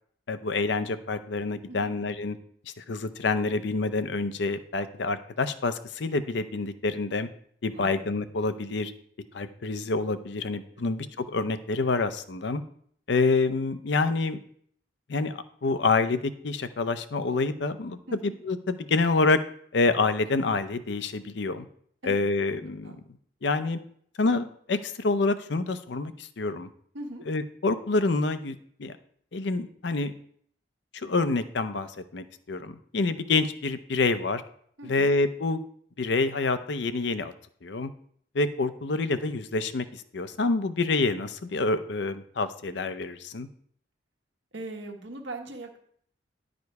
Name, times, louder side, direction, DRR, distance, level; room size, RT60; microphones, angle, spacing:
voice 1, 0.3-2.4 2.8-7.3 7.6-8.9 9.3-12.6 13.1-14.4 15.1-19.4 19.7-21.6 22.0-22.9 23.4-23.8 24.2-26.7 27.3-29.0 29.3-30.1 30.9-34.4 34.9-35.6 36.0-37.3 37.6-37.9 38.3-43.5, left 3 dB, 70° left, 12 dB, 0.6 m, -27 dB
voice 2, 34.8-35.1 44.5-45.8, right 2 dB, 80° right, 3 dB, 1.4 m, -40 dB
10.5 x 5.0 x 4.7 m, 0.64 s
head